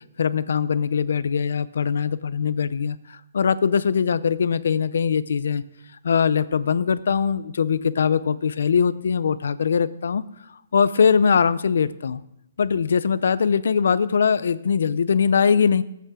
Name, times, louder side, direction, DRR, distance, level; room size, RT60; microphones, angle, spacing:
voice 1, 0.2-5.6 6.0-10.2 10.5-12.2 12.6-15.8, left 6 dB, 75° left, 17 dB, 0.6 m, -21 dB
19.0 x 8.3 x 3.8 m, 0.81 s
hypercardioid pair, 165°, 0 cm